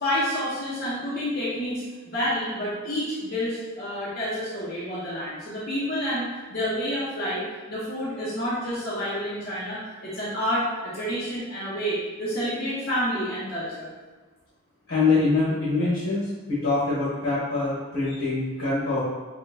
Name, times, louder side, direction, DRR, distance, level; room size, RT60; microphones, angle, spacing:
voice 1, 0.0-7.4 7.7-13.9, equal, 50° left, -9 dB, 0.9 m, -29 dB
voice 2, 14.9-19.0, left 3 dB, 80° left, -11 dB, 1.3 m, -24 dB
5.8 x 2.3 x 2.7 m, 1.3 s
head